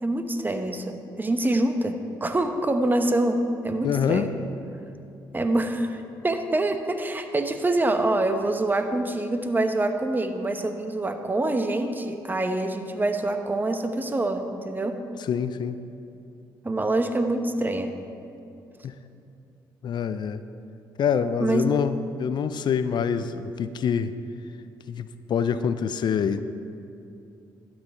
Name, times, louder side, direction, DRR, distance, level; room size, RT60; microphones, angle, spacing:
voice 1, 0.0-4.3 5.3-15.0 16.6-17.9 21.4-21.7, right 2 dB, 20° right, 7 dB, 1.0 m, -25 dB
voice 2, 3.8-4.3 15.3-15.8 18.8-18.9 19.8-20.4 21.0-24.1 24.9-26.4, left 7 dB, 60° left, 12 dB, 0.5 m, -25 dB
12.5 x 9.0 x 4.5 m, 2.7 s
supercardioid pair, 65°, 9 cm